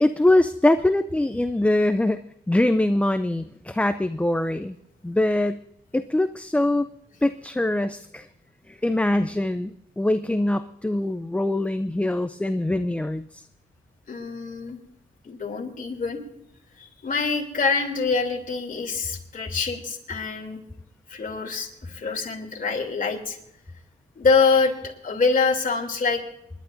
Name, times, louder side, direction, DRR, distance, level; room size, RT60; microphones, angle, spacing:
voice 1, 0.0-4.8 5.0-5.6 5.9-6.9 7.2-8.3 8.7-13.4, left 1 dB, 5° left, 11 dB, 0.4 m, -23 dB
voice 2, 14.1-14.8 15.2-16.2 16.8-20.6 21.1-23.4 24.2-24.8 25.0-26.2, left 4 dB, 45° left, 1 dB, 3.0 m, -25 dB
28.5 x 11.0 x 2.6 m, 0.79 s
cardioid pair, 115°, 20 cm